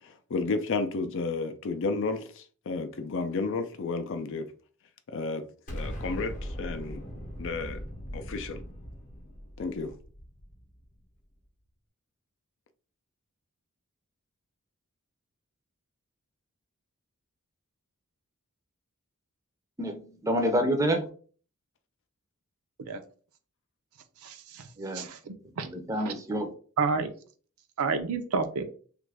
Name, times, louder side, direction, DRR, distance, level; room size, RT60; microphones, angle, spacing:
voice 1, 0.0-4.5 5.1-5.5 5.7-7.0 7.4-7.8 8.1-8.6 9.6-9.9, left 3 dB, 60° left, 0.4 m, -32 dB
Explosion, 5.7-10.8, equal, 35° left, 0.8 m, -40 dB
voice 2, 19.8-21.1 24.8-25.1 25.6-26.5, equal, 15° right, 0.5 m, -28 dB
voice 3, 24.2-24.6 24.9-25.7 26.0-26.1 26.8-27.1 27.8-28.6, right 4 dB, 80° right, 0.5 m, -30 dB
3.0 x 2.4 x 3.3 m
head